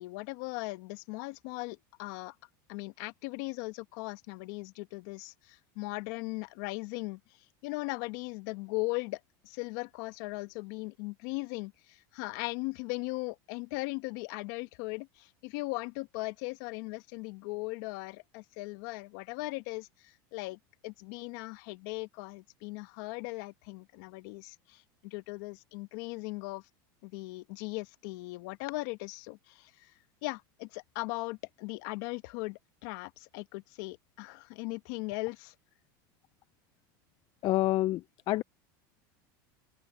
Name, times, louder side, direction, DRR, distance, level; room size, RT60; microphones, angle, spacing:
voice 1, 0.0-2.3 2.7-26.6 27.0-35.5, left 24 dB, 65° left, 1.4 m, -38 dB
voice 2, 37.4-38.4, left 16 dB, 40° left, 0.4 m, -28 dB
open air
supercardioid pair, 125°, 11 cm